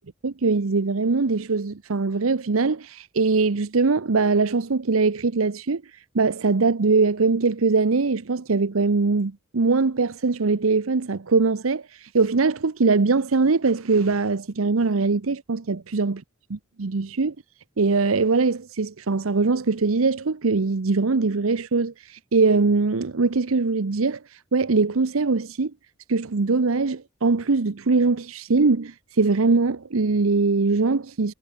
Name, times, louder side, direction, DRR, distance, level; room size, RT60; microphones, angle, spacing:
voice 1, 0.2-5.8 6.1-16.2 16.5-17.3 17.8-25.7 26.1-31.3, right 4 dB, 85° right, 0.8 m, -22 dB
head